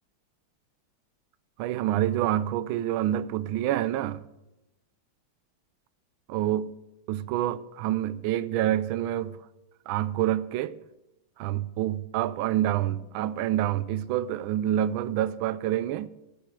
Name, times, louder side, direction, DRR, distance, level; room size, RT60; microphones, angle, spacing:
voice 1, 1.6-4.2 6.3-6.8 7.1-9.4 9.9-10.8 11.4-16.1, right 12 dB, 80° right, 1.3 m, -27 dB
14.5 x 7.9 x 4.7 m
omnidirectional pair, 2.3 m